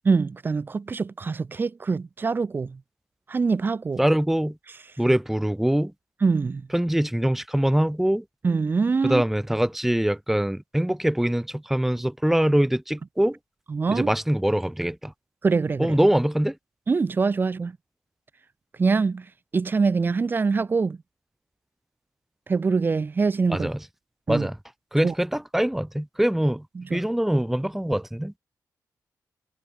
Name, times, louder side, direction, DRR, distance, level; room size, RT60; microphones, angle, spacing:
voice 1, 0.1-2.8 3.3-4.0 6.2-6.6 8.4-9.2 13.7-14.1 15.4-16.0 16.9-17.7 18.8-19.3 19.5-21.0 22.5-23.7 24.3-24.5 25.0-25.1 26.8-27.0, right 4 dB, 30° right, 3.6 m, -24 dB
voice 2, 4.0-4.6 5.0-5.9 6.7-8.2 9.0-13.4 13.9-15.1 15.8-16.6 23.5-23.8 24.3-24.6 24.9-26.7 26.9-28.3, right 1 dB, 5° right, 3.9 m, -23 dB
wide cardioid pair, 160°, 7 cm